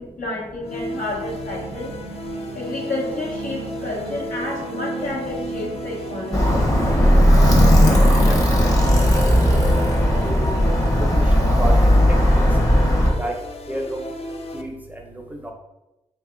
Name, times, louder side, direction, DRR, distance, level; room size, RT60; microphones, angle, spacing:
voice 1, 0.0-1.9 2.5-6.5, left 2 dB, 70° left, -3 dB, 1.0 m, -30 dB
sound 1, 0.6-14.6, left 1 dB, 45° left, 0.4 m, -34 dB
sound 2, 0.6-12.1, right 4 dB, 65° right, 0.4 m, -38 dB
Alarm, 6.3-13.1, equal, 25° left, 0.9 m, -16 dB
voice 2, 9.5-9.8 10.2-10.5 11.6-11.7 12.3-12.4 13.1-13.3 13.7-14.1 14.5-15.5, right 1 dB, 10° right, 1 dB, 0.6 m, -30 dB
2.7 x 2.3 x 3.6 m, 0.98 s
supercardioid pair, 45°, 14 cm